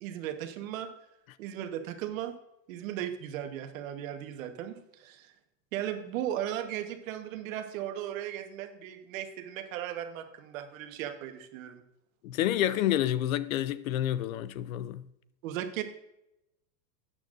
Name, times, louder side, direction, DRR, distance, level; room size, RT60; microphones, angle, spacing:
voice 1, 0.0-0.9 1.4-2.3 2.7-5.3 5.7-11.8 15.4-15.8, right 11 dB, 50° right, 1.3 m, -36 dB
voice 2, 12.2-15.0, left 12 dB, 55° left, 0.5 m, -29 dB
12.5 x 9.4 x 2.6 m
supercardioid pair, 160°, 50 cm